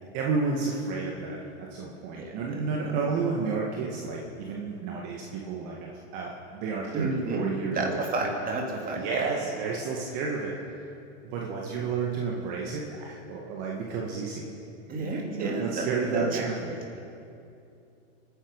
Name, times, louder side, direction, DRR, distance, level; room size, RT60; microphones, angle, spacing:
voice 1, 0.1-8.0 8.9-10.5 11.2-14.5 14.9-16.8, right 4 dB, 45° right, -2 dB, 2.0 m, -31 dB
voice 2, 2.2-2.9 6.9-9.2 14.9-16.3, right 3 dB, 25° right, 0 dB, 3.0 m, -31 dB
25.5 x 10.0 x 5.4 m, 2.6 s
hypercardioid pair, 120°, 35 cm